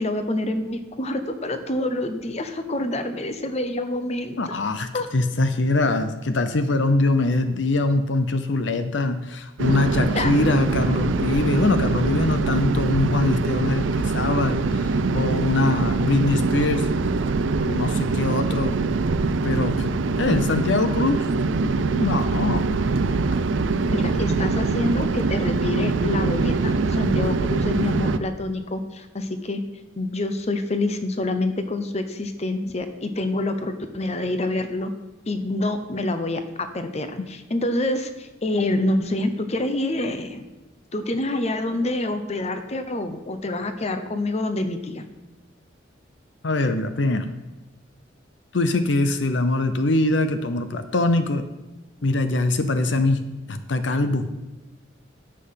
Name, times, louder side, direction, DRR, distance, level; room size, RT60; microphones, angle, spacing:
voice 1, 0.0-4.6 4.9-5.1 10.1-10.3 23.9-29.6 30.0-34.9 35.3-36.4 36.7-40.5 40.9-45.1, left 2 dB, 35° left, 8 dB, 0.8 m, -27 dB
voice 2, 4.4-16.9 17.5-18.8 19.4-19.9 20.2-21.3 21.6-22.7 46.4-47.3 48.5-51.4 52.0-53.2 53.5-54.3, left 2 dB, 70° left, 9 dB, 0.7 m, -23 dB
sound 1, 9.6-28.2, right 3 dB, 80° right, 0.5 m, -23 dB
10.0 x 7.6 x 5.8 m, 1.1 s
head